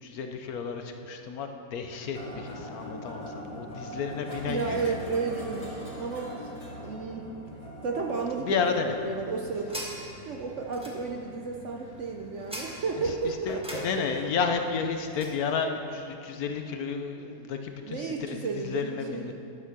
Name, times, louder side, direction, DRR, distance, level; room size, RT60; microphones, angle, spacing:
voice 1, 0.0-4.9 8.4-8.9 13.0-19.3, left 5 dB, 65° left, 6 dB, 1.1 m, -32 dB
sound 1, 2.1-15.4, equal, 20° left, 1.7 m, -43 dB
voice 2, 4.4-6.3 6.8-7.3 7.8-9.8 10.3-13.8 14.2-14.3 16.3-16.4 17.8-19.3, right 4 dB, 60° right, 1 dB, 0.8 m, -32 dB
sound 2, 9.0-15.4, equal, 5° right, 1.3 m, -44 dB
11.0 x 8.0 x 6.0 m, 2.6 s
omnidirectional pair, 1.8 m